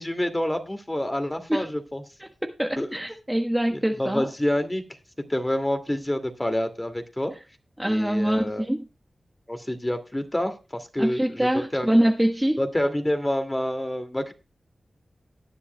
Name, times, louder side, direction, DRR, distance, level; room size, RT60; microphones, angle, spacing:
voice 1, 0.0-2.0 2.8-2.9 3.7-4.8 5.3-7.3 7.8-8.7 9.5-12.0 12.6-14.3, left 1 dB, 20° left, 7 dB, 2.2 m, -28 dB
voice 2, 2.4-4.3 7.8-8.9 11.0-12.6, right 1 dB, 10° right, 3 dB, 1.2 m, -24 dB
19.0 x 9.8 x 2.2 m, 0.30 s
cardioid pair, 40°, 0 cm